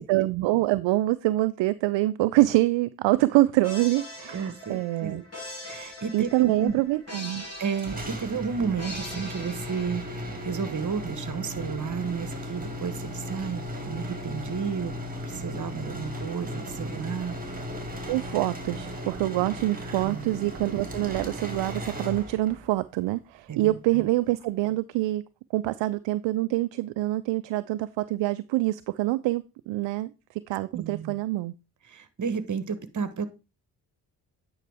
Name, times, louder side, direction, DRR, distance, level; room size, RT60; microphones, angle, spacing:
voice 1, 0.0-5.2 6.1-7.4 18.1-25.2 25.5-31.5, right 17 dB, 65° right, 0.5 m, -25 dB
sound 1, 3.6-10.5, left 2 dB, 30° left, 4.9 m, -42 dB
voice 2, 4.3-5.2 5.6-6.8 7.6-10.1 10.4-14.9 15.2-17.4 20.0-20.4 23.5-24.0 30.7-31.1 31.9-33.3, right 6 dB, 35° right, 1.3 m, -32 dB
sound 2, 7.8-22.7, equal, 15° right, 2.3 m, -36 dB
9.1 x 5.5 x 3.5 m
hypercardioid pair, 40°, 49 cm